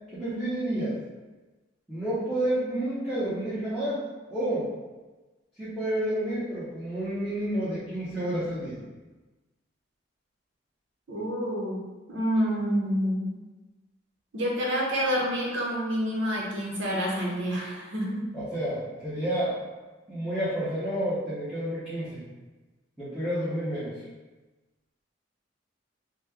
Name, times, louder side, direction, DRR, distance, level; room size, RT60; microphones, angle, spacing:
voice 1, 0.1-0.9 1.9-4.0 4.3-4.7 5.6-8.8 18.3-19.6 20.1-22.2 23.0-24.0, right 1 dB, 5° right, -13 dB, 0.8 m, -30 dB
voice 2, 11.1-11.8 12.1-13.3 14.3-18.3, equal, 85° right, -3 dB, 0.8 m, -28 dB
3.0 x 2.2 x 3.4 m, 1.2 s
head